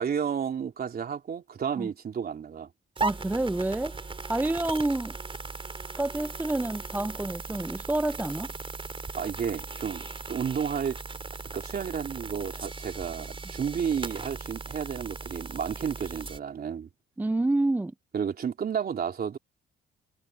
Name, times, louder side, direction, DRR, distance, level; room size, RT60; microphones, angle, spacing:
voice 1, 0.0-2.7 9.1-11.0 11.5-16.9 18.1-19.4, right 7 dB, 50° right, 3.2 m, -32 dB
voice 2, 3.0-3.9 4.3-5.2 6.0-8.5 17.2-17.9, right 2 dB, 10° right, 0.4 m, -28 dB
sound 1, 3.0-16.4, right 3 dB, 25° right, 4.5 m, -38 dB
cardioid pair, 90°, 20 cm